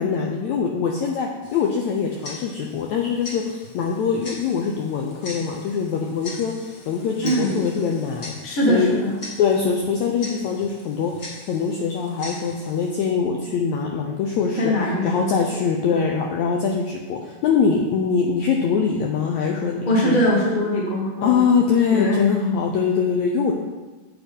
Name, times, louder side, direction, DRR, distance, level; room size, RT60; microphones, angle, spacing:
voice 1, 0.0-8.3 8.7-8.9 9.4-20.2 21.2-23.5, left 6 dB, 75° left, 0 dB, 1.7 m, -23 dB
Tick-tock, 1.4-13.1, left 2 dB, 55° left, 0.9 m, -41 dB
voice 2, 7.2-7.6 8.4-9.2 9.4-9.5 14.6-15.6 15.9-16.1 19.8-21.4 21.9-22.5, equal, 30° left, -3 dB, 0.9 m, -22 dB
7.8 x 7.2 x 5.4 m, 1.2 s
omnidirectional pair, 4.1 m